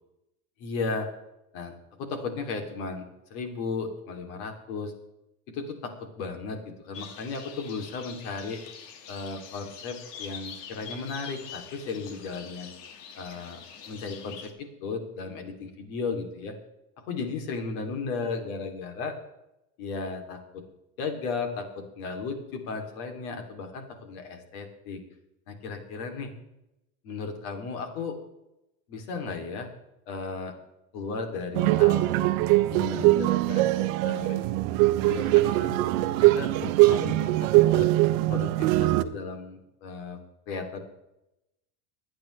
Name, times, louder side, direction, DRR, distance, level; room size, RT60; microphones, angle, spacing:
voice 1, 0.6-1.1 1.5-4.9 5.5-8.6 9.1-12.7 13.1-13.6 13.9-16.5 17.0-19.1 19.8-20.6 21.0-25.0 25.5-26.3 27.0-28.2 28.9-29.7 30.1-30.5 30.9-32.1 32.7-34.5 34.9-37.9 38.3-40.2 40.5-40.8, left 4 dB, 60° left, 4 dB, 3.1 m, -35 dB
sound 1, 6.9-14.5, left 7 dB, 80° left, 2.2 m, -44 dB
sound 2, 31.5-39.0, right 17 dB, 55° right, 0.9 m, -22 dB
24.5 x 9.4 x 3.3 m, 0.89 s
supercardioid pair, 165°, 48 cm